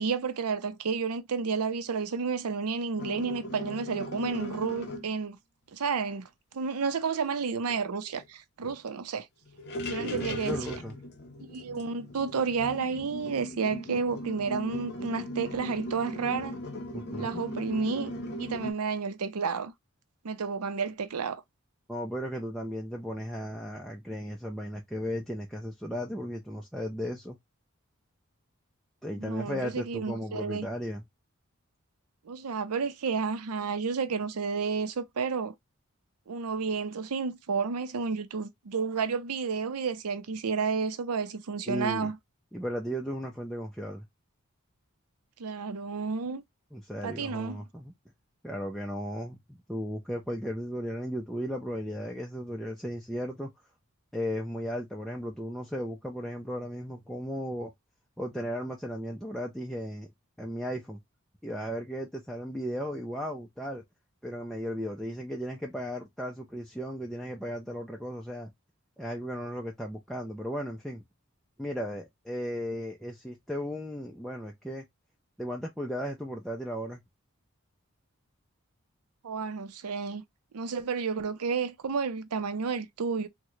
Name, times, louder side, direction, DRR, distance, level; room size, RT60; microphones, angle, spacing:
voice 1, 0.0-5.4 5.7-6.3 6.5-9.3 9.9-10.8 11.4-16.6 17.2-18.1 18.4-19.7 20.2-21.4 29.2-30.7 32.3-35.5 36.3-42.2 45.4-46.4 47.0-47.6 79.2-80.2 80.5-83.3, right 5 dB, 85° right, 0.6 m, -31 dB
sound 1, 3.0-5.1 7.7-7.8 8.1-8.2 8.7-8.8 9.5-18.7, left 1 dB, 45° left, 0.6 m, -38 dB
voice 2, 10.0-10.9 16.9-17.4 21.9-27.4 29.0-31.0 41.7-42.1 42.5-44.0 46.7-47.9 48.4-53.5 54.1-57.7 58.2-60.1 60.4-61.0 61.4-63.8 64.2-68.5 69.0-71.0 71.6-74.8 75.4-77.0, equal, ahead, 0.3 m, -35 dB
3.6 x 2.2 x 3.0 m
head